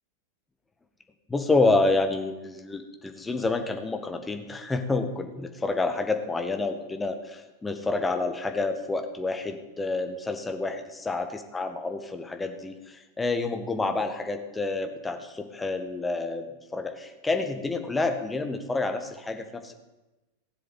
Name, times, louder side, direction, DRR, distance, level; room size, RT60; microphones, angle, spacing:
voice 1, 1.3-19.7, left 3 dB, 10° left, 6 dB, 1.6 m, -28 dB
16.0 x 7.6 x 9.0 m, 1.1 s
figure-of-eight pair, 90°, 0 cm